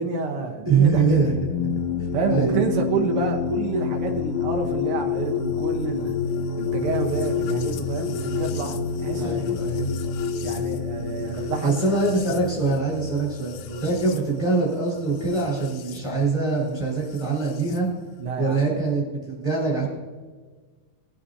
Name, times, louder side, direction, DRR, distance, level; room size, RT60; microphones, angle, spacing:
voice 1, 0.0-1.3 2.1-6.2 6.5-9.4 10.4-11.8 13.7-13.8 18.2-18.7, right 4 dB, 80° right, 2 dB, 1.2 m, -28 dB
voice 2, 0.7-1.3 1.6-1.7 2.3-2.6 9.2-9.9 11.3-13.5 13.8-17.9 18.4-19.8, right 4 dB, 10° right, -6 dB, 3.8 m, -23 dB
sound 1, 0.9-16.0 17.1-17.8, left 7 dB, 80° left, 2.1 m, -29 dB
22.0 x 9.0 x 2.7 m, 1.4 s
omnidirectional pair, 4.1 m